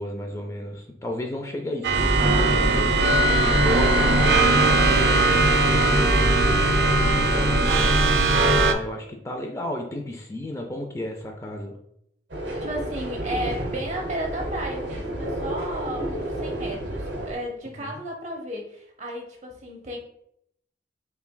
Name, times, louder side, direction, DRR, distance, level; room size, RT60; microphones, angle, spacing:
voice 1, 0.0-6.3 7.1-8.0 8.6-11.8 17.8-18.0, left 1 dB, 15° left, 2 dB, 0.4 m, -33 dB
sound 1, 1.8-8.7, right 3 dB, 60° right, 0.4 m, -21 dB
sound 2, 1.9-8.7, equal, 75° left, 1.2 m, -24 dB
sound 3, 12.3-17.3, right 1 dB, 85° right, 0.8 m, -31 dB
voice 2, 12.6-20.0, right 1 dB, 40° right, 2 dB, 0.7 m, -33 dB
5.6 x 2.3 x 2.2 m, 0.74 s
head